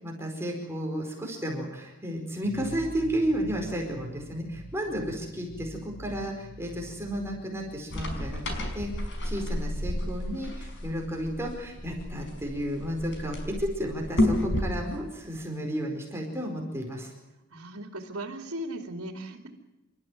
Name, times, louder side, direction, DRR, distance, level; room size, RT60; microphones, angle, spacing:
voice 1, 0.0-8.4 8.7-17.1, equal, 10° right, 0 dB, 4.7 m, -32 dB
sound 1, 2.4-8.4, right 2 dB, 65° right, 1.4 m, -45 dB
sound 2, 7.9-14.8, left 1 dB, 55° left, 5.3 m, -31 dB
voice 2, 17.5-19.5, right 1 dB, 80° right, 5 dB, 2.9 m, -37 dB
27.5 x 14.0 x 9.3 m, 0.99 s
head